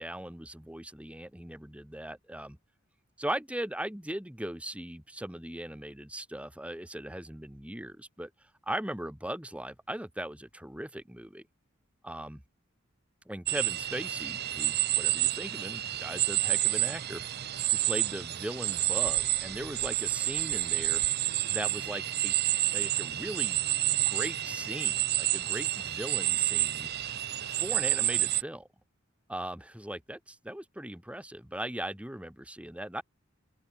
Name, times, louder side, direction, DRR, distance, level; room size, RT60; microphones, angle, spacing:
voice 1, 0.0-2.6 3.2-8.3 8.6-11.5 12.0-12.4 13.3-17.2 17.7-21.0 21.5-22.3 22.7-23.6 24.0-26.9 27.5-28.7 29.3-33.0, right 1 dB, 5° right, 1.7 m, -39 dB
sound 1, 13.5-28.4, right 14 dB, 50° right, 0.7 m, -29 dB
open air
head